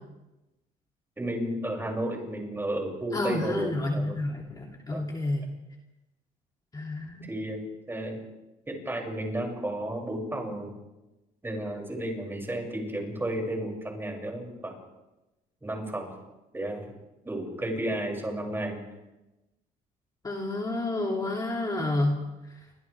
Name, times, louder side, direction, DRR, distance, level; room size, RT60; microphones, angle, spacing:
voice 1, 1.2-4.2 4.9-5.0 7.2-7.6 7.9-8.2 8.7-10.7 11.4-14.7 15.6-16.1 16.5-16.9 17.3-18.8, right 1 dB, 15° right, 0 dB, 7.1 m, -32 dB
voice 2, 3.1-5.5 6.7-7.2 20.2-22.2, left 2 dB, 20° left, -1 dB, 3.1 m, -29 dB
29.5 x 26.0 x 3.6 m, 1.0 s
cardioid pair, 110°, 17 cm